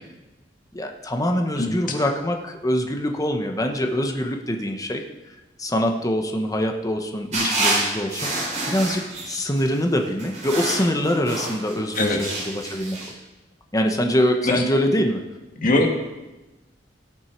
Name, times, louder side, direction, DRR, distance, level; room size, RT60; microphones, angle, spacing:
voice 1, 0.7-5.0 5.6-13.0 13.7-15.2, equal, 20° left, 3 dB, 1.1 m, -24 dB
sound 1, 7.3-9.6 10.2-13.1, right 2 dB, 40° right, 5.2 m, -27 dB
voice 2, 12.0-12.3 14.4-14.6 15.6-15.9, left 2 dB, 45° left, 2 dB, 1.9 m, -21 dB
17.5 x 7.5 x 4.6 m, 1.1 s
head